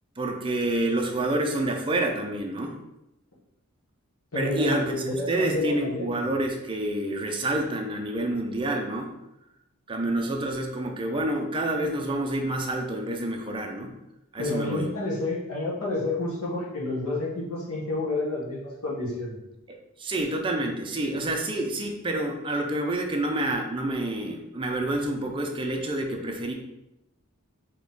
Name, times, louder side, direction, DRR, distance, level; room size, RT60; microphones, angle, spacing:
voice 1, 0.2-2.7 4.3-9.1 9.9-13.9 14.3-14.8 19.7-26.5, right 1 dB, 20° right, 2 dB, 0.5 m, -28 dB
voice 2, 4.3-6.1 14.4-19.4, left 2 dB, 70° left, -6 dB, 1.1 m, -29 dB
4.0 x 3.0 x 3.5 m, 0.91 s
head